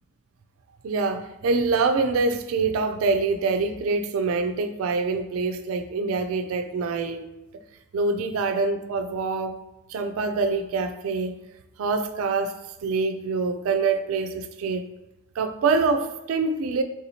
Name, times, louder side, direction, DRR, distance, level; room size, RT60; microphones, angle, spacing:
voice 1, 0.8-7.3 7.9-9.6 9.9-11.4 11.8-12.6 12.8-14.9 15.4-16.8, right 4 dB, 75° right, 8 dB, 0.3 m, -25 dB
3.5 x 2.7 x 2.8 m, 0.97 s
head